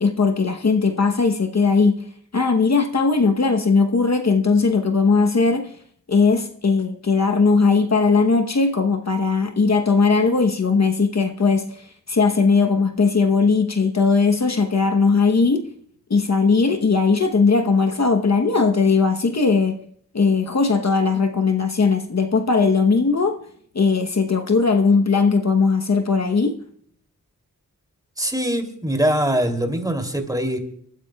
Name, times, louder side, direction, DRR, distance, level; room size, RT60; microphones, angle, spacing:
voice 1, 0.0-2.0 2.3-5.7 6.1-15.6 16.1-19.7 20.1-23.4 23.7-26.6, left 4 dB, 50° left, 1.0 m, -18 dB
voice 2, 28.2-30.6, right 1 dB, 10° right, 2.8 m, -22 dB
29.5 x 14.0 x 2.3 m
wide cardioid pair, 85°, 33 cm